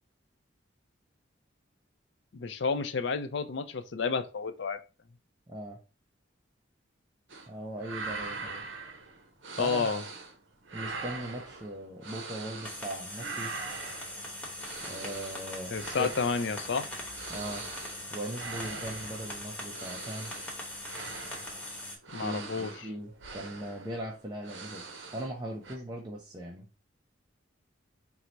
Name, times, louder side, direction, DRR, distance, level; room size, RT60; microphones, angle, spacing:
voice 1, 2.3-4.8 9.6-10.0 15.7-16.9 22.1-22.7, left 5 dB, 60° left, 0.4 m, -30 dB
voice 2, 5.5-5.8 7.5-8.6 9.5-10.0 10.7-13.5 14.8-16.1 17.3-17.6 18.1-20.3 22.2-24.8 25.1-26.7, equal, 20° right, 0.5 m, -39 dB
sound 1, 7.3-7.5 7.8-10.4 10.6-12.9 13.1-25.4 25.6-25.8, right 4 dB, 70° right, 0.8 m, -42 dB
sound 2, 12.6-22.0, left 1 dB, 5° left, 1.0 m, -41 dB
4.5 x 2.1 x 3.9 m
head